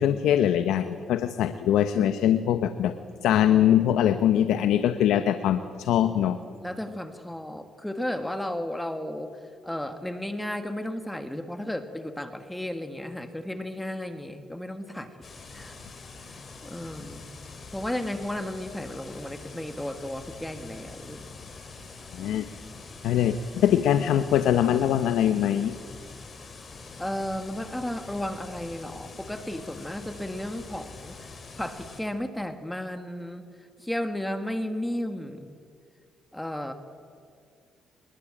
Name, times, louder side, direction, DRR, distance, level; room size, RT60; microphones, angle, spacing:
voice 1, 0.0-2.9 3.2-6.4 22.1-22.4 23.0-25.7, left 10 dB, 85° left, 10 dB, 1.0 m, -22 dB
voice 2, 6.6-15.1 15.5-15.8 16.3-17.2 17.7-21.3 27.0-35.6 36.3-36.7, left 1 dB, 5° left, 8 dB, 1.7 m, -34 dB
sound 1, 15.2-32.0, left 4 dB, 40° left, 5.1 m, -44 dB
25.5 x 21.5 x 8.8 m, 2.2 s
cardioid pair, 90°, 0 cm